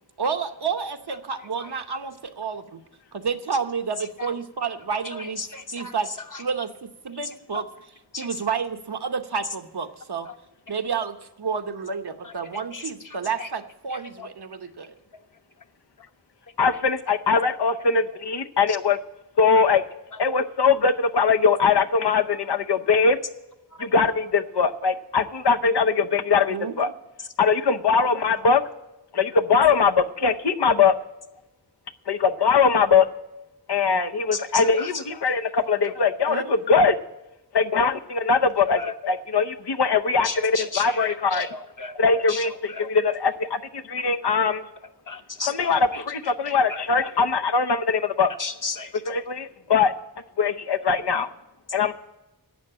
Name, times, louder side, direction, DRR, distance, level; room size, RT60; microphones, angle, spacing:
voice 1, 0.2-2.8 3.1-5.4 5.7-6.1 6.4-7.7 8.2-10.3 10.7-15.0 26.5-26.9 36.3-36.5, right 5 dB, 75° right, 7 dB, 1.0 m, -30 dB
voice 2, 5.5-5.9 8.1-8.3 12.7-12.8 13.4-13.5 34.3-34.4 34.8-34.9 38.8-38.9 40.2-40.8 41.4-41.9 42.3-42.4 45.1-45.7 48.4-48.9, left 4 dB, 50° left, 6 dB, 1.1 m, -33 dB
voice 3, 16.6-19.0 19.4-19.8 20.2-23.2 23.8-26.9 27.4-28.6 29.1-31.0 32.1-33.1 33.7-37.0 37.5-41.5 41.9-44.6 45.4-48.3 49.1-49.9 50.4-51.3 51.7-51.9, left 5 dB, 85° left, 6 dB, 0.8 m, -21 dB
11.5 x 7.9 x 8.5 m, 0.96 s
wide cardioid pair, 55°, 40 cm